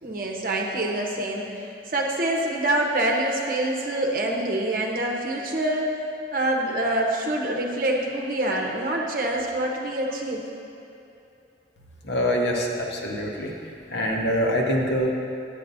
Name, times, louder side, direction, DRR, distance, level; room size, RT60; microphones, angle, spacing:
voice 1, 0.0-1.6 1.9-5.9 6.3-10.4, right 1 dB, 50° right, 0 dB, 0.9 m, -26 dB
voice 2, 12.0-13.5 13.9-15.1, equal, 80° left, 0 dB, 0.9 m, -24 dB
10.0 x 8.6 x 2.7 m, 2.7 s
head